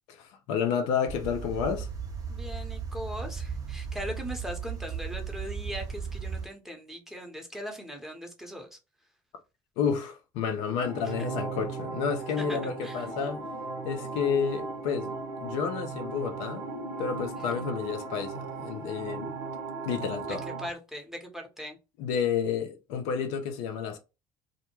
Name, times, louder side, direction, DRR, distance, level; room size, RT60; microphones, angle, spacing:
voice 1, 0.1-1.9 9.8-13.5 13.8-15.1 15.4-16.7 17.0-19.4 19.8-20.4 22.0-24.0, left 7 dB, 75° left, 0.5 m, -30 dB
sound 1, 1.1-6.5, right 6 dB, 30° right, 0.7 m, -36 dB
voice 2, 2.3-8.8 12.4-13.0 17.4-17.7 20.6-21.8, equal, 5° right, 0.9 m, -40 dB
sound 2, 10.7-20.7, right 4 dB, 80° right, 0.8 m, -37 dB
2.1 x 2.1 x 3.0 m
hypercardioid pair, 65°, 11 cm